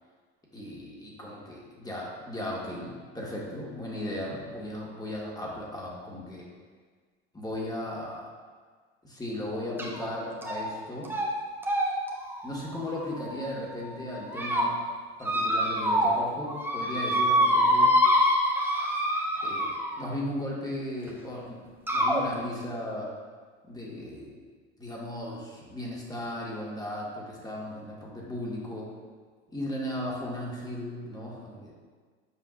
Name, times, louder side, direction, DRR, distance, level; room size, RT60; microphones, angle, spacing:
voice 1, 0.5-6.5 7.3-8.2 9.0-11.1 12.4-14.7 15.2-17.9 19.4-19.7 20.0-23.1 23.6-24.4 24.8-28.9 29.5-31.7, left 1 dB, 10° left, -4 dB, 1.6 m, -36 dB
sound 1, 9.8-10.1 10.4-10.8 11.0-11.3 11.6-13.6 14.1-14.6 15.2-16.2 16.5-20.1 21.1-21.2 21.9-22.2, equal, 5° right, 1.0 m, -26 dB
7.7 x 5.1 x 2.4 m, 1.5 s
hypercardioid pair, 80°, 31 cm